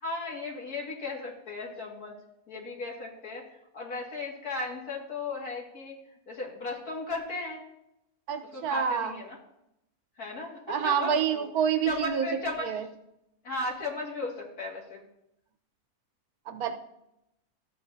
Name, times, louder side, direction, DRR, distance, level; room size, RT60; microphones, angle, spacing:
voice 1, 0.0-2.1 2.5-5.9 6.3-7.6 8.5-9.4 10.2-11.5 11.9-12.8 13.4-15.0, left 2 dB, 85° left, -1 dB, 2.6 m, -36 dB
voice 2, 8.3-9.1 10.7-12.3 12.6-12.8 16.5-16.8, right 8 dB, 90° right, 8 dB, 1.4 m, -27 dB
13.5 x 8.3 x 2.7 m, 0.83 s
omnidirectional pair, 1.6 m